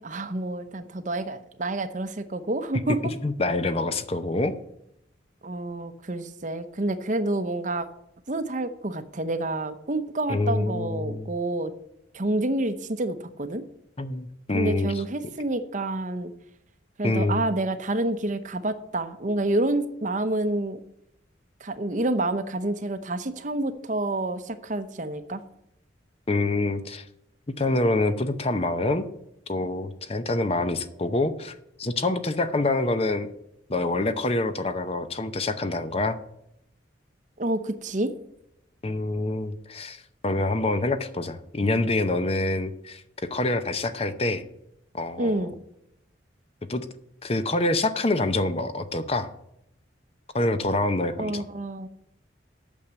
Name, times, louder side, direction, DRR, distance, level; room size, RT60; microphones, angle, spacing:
voice 1, 0.0-3.1 5.4-7.9 8.3-11.7 12.1-13.6 14.5-16.3 17.0-20.8 21.6-25.4 37.4-38.1 45.2-45.6 51.2-51.9, right 2 dB, 40° right, 10 dB, 0.8 m, -28 dB
voice 2, 3.0-4.5 10.3-11.3 14.0-15.0 17.0-17.4 26.3-27.0 27.5-29.1 29.5-33.3 33.7-36.2 38.8-43.0 43.3-44.4 44.9-45.5 46.7-46.9 47.2-49.3 50.3-51.4, left 2 dB, 30° left, 10 dB, 0.7 m, -26 dB
8.7 x 6.7 x 7.0 m, 0.79 s
head